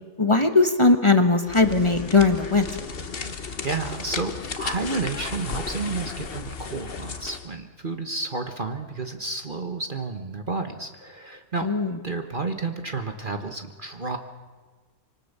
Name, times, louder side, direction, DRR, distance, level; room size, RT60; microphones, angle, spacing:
voice 1, 0.2-2.7 11.6-12.0, left 3 dB, 20° left, 7 dB, 1.2 m, -19 dB
sound 1, 1.4-7.5, left 5 dB, 45° left, 1.3 m, -34 dB
voice 2, 3.2-11.7 12.0-14.2, right 3 dB, 35° right, 6 dB, 1.4 m, -31 dB
26.0 x 24.5 x 6.8 m, 1.4 s
omnidirectional pair, 1.5 m